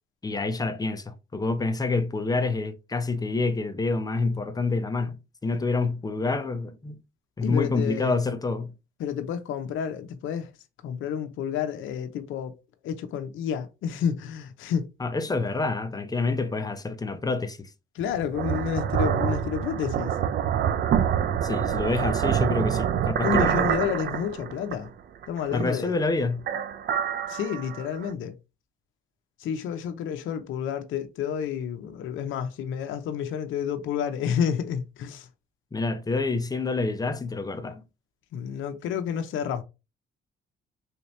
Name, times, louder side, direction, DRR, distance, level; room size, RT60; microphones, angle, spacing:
voice 1, 0.2-6.9 7.4-8.7 15.0-17.7 21.4-23.7 25.5-26.5 35.7-37.8, left 3 dB, 20° left, 0.6 m, -27 dB
voice 2, 7.4-8.2 9.0-10.5 10.8-12.5 12.8-14.9 17.9-20.1 23.2-24.9 25.3-26.0 27.3-28.3 29.4-35.3 38.3-39.6, left 8 dB, 80° left, 0.6 m, -30 dB
sound 1, 18.0-24.9 25.2-26.0 26.4-28.1, right 9 dB, 55° right, 0.4 m, -26 dB
3.5 x 2.8 x 3.1 m
cardioid pair, 90°, 20 cm